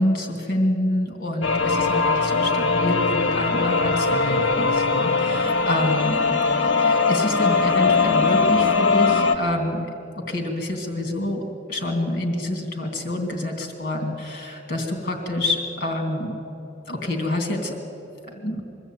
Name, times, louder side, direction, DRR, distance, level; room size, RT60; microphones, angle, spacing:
voice 1, 0.0-6.2 6.6-9.9 10.1-16.3 16.9-17.8 18.3-18.6, left 1 dB, 50° left, 3 dB, 2.8 m, -27 dB
sound 1, 1.4-9.4, left 4 dB, 75° left, 1.0 m, -20 dB
22.0 x 13.5 x 9.2 m, 2.9 s
head